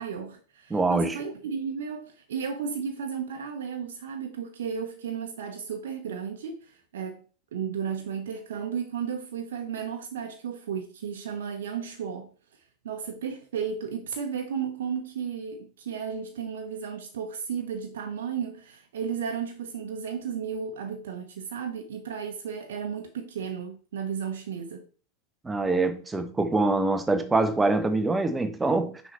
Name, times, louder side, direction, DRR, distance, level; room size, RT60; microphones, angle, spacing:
voice 1, 0.0-7.2 7.5-12.3 12.8-24.8, right 7 dB, 60° right, 0.9 m, -34 dB
voice 2, 0.7-1.2 25.4-29.0, right 3 dB, 10° right, 1.0 m, -24 dB
6.1 x 5.5 x 4.3 m
figure-of-eight pair, 90°, 0 cm